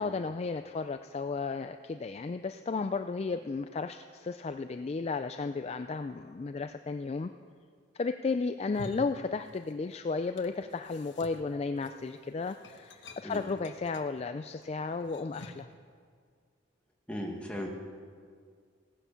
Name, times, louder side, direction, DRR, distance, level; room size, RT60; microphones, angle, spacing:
voice 1, 0.0-7.3 7.9-15.7, left 4 dB, 30° left, 9 dB, 0.3 m, -34 dB
sound 1, 8.5-9.9 10.2-15.8, left 2 dB, 60° left, 1.1 m, -50 dB
voice 2, 17.1-17.7, equal, 5° left, 0 dB, 1.7 m, -37 dB
17.0 x 10.0 x 7.0 m, 2.1 s
head